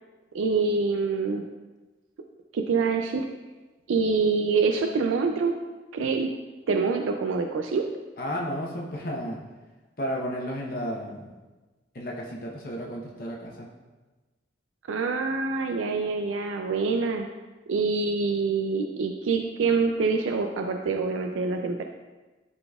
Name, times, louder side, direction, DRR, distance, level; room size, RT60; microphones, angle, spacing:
voice 1, 0.3-1.4 2.5-3.2 3.9-5.5 5.9-6.3 6.7-7.8 14.9-17.3 17.7-21.8, right 4 dB, 90° right, 4 dB, 0.4 m, -25 dB
voice 2, 8.2-9.4 10.0-11.3 11.9-13.7, equal, 45° left, -2 dB, 0.8 m, -33 dB
11.0 x 4.0 x 2.3 m, 1.2 s
head